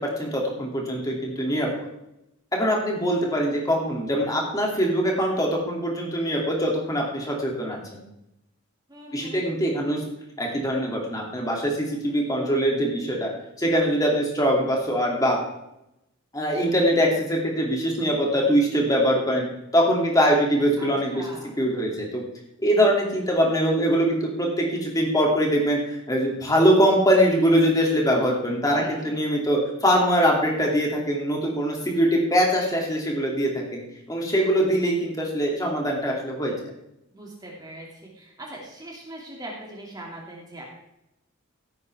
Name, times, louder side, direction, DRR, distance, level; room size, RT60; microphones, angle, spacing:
voice 1, 0.2-1.7 2.5-8.0 9.1-10.0 10.4-13.3 13.6-15.4 16.3-19.5 19.7-21.2 21.6-22.2 22.6-33.8 34.1-36.5, equal, 15° left, -1 dB, 2.7 m, -22 dB
voice 2, 8.9-9.4 20.8-21.6 28.7-29.2 37.1-40.6, right 1 dB, 20° right, -3 dB, 2.5 m, -41 dB
16.0 x 8.7 x 3.6 m, 0.86 s
head